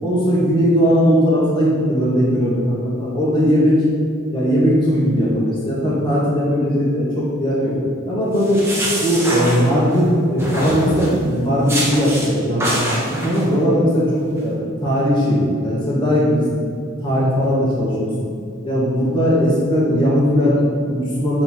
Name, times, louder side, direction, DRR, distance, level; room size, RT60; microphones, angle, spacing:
voice 1, 0.0-3.8 4.3-7.7 8.0-8.6 9.0-16.6 17.0-18.1 18.6-21.4, equal, 20° left, -7 dB, 1.2 m, -18 dB
sound 1, 8.3-10.0 10.4-11.2 11.7-12.3 12.6-13.4, right 1 dB, 10° right, 1.2 m, -24 dB
6.5 x 3.6 x 4.3 m, 2.3 s
head